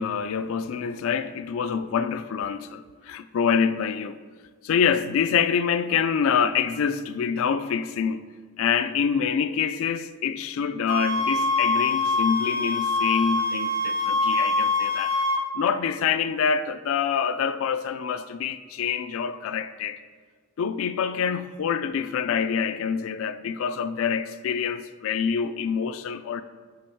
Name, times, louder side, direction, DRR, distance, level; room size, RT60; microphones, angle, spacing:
voice 1, 0.0-4.2 4.6-8.2 8.6-15.2 15.5-20.0 20.6-26.4, left 7 dB, 65° left, 0.3 m, -26 dB
sound 1, 10.9-15.4, left 3 dB, 85° right, 0.7 m, -24 dB
8.6 x 3.5 x 4.5 m
head